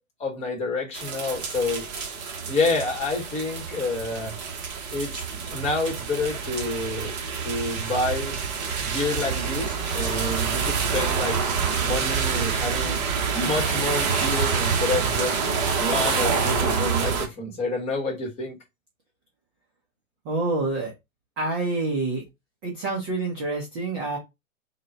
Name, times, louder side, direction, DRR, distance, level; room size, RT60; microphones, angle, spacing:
voice 1, 0.2-1.8 2.4-4.4 4.9-8.4 8.8-11.4 11.8-13.0 13.3-15.4 15.8-18.6, left 3 dB, 15° left, 1.0 m, -28 dB
sound 1, 0.9-17.3, right 5 dB, 30° right, 0.9 m, -27 dB
voice 2, 20.2-20.9 21.4-22.2 22.6-24.2, right 2 dB, 15° right, 0.4 m, -27 dB
3.9 x 2.2 x 3.9 m
hypercardioid pair, 135°, 42 cm